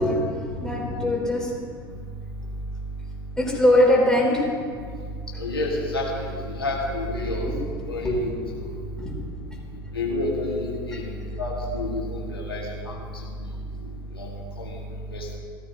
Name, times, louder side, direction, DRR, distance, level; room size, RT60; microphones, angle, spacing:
voice 1, 0.0-1.6 3.4-4.5 9.0-9.1 13.5-13.6, left 1 dB, 5° left, -4 dB, 3.4 m, -21 dB
voice 2, 5.4-8.8 9.9-11.1 11.4-13.0 14.1-14.3 14.6-14.8 15.1-15.4, left 1 dB, 90° left, -3 dB, 1.9 m, -29 dB
15.5 x 13.0 x 2.9 m, 2.1 s
figure-of-eight pair, 80°, 12 cm